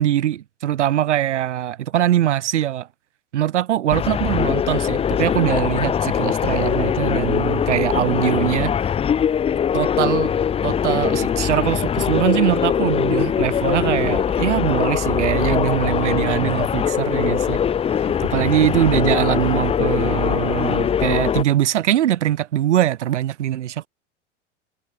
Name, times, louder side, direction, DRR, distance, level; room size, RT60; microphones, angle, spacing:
voice 1, 0.0-2.9 3.3-8.8 9.7-10.3 10.6-17.6 18.0-23.9, right 12 dB, 70° right, 1.2 m, -22 dB
sound 1, 3.9-21.4, left 8 dB, 15° left, 0.7 m, -21 dB
figure-of-eight pair, 90°, 36 cm